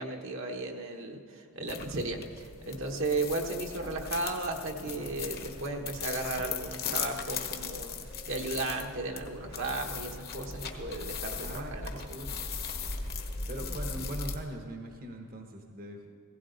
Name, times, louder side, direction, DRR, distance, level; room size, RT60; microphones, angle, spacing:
voice 1, 0.0-12.1, right 2 dB, 60° right, 2 dB, 1.2 m, -35 dB
sound 1, 1.7-14.4, left 5 dB, 45° left, 1.2 m, -38 dB
voice 2, 11.4-12.4 13.5-16.0, right 1 dB, 40° right, 3 dB, 1.1 m, -41 dB
16.5 x 15.5 x 4.0 m, 2.4 s
head